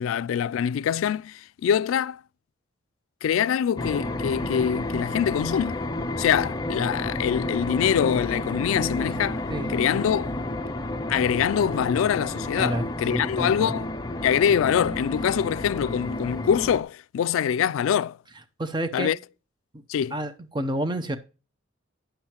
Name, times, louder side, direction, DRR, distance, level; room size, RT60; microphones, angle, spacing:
voice 1, 0.0-2.2 3.2-5.8 6.2-9.4 9.7-10.3 11.1-13.9 14.2-18.2 18.9-19.2 19.9-20.2, left 8 dB, 85° left, 0.3 m, -24 dB
sound 1, 3.8-16.8, left 1 dB, 20° left, 0.6 m, -31 dB
voice 2, 13.1-13.8 18.6-19.1 20.1-21.2, right 1 dB, 20° right, 0.7 m, -29 dB
10.0 x 7.4 x 2.9 m
head